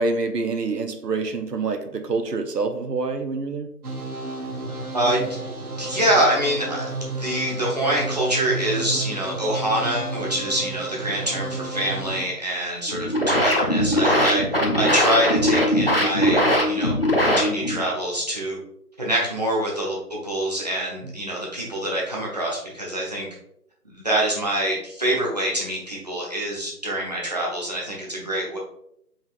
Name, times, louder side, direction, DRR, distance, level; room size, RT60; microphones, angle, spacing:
voice 1, 0.0-3.7 21.0-21.1, right 3 dB, 90° right, 8 dB, 0.8 m, -26 dB
sound 1, 3.8-12.3, right 3 dB, 70° right, 1.0 m, -32 dB
voice 2, 4.9-5.2 5.8-6.9 7.2-14.4 14.7-16.9 17.2-18.6 19.0-23.3 23.8-28.6, right 1 dB, 25° right, -4 dB, 0.8 m, -25 dB
sound 2, 12.9-17.9, equal, 40° left, 0.5 m, -20 dB
5.3 x 3.6 x 2.4 m, 0.74 s
figure-of-eight pair, 160°, 47 cm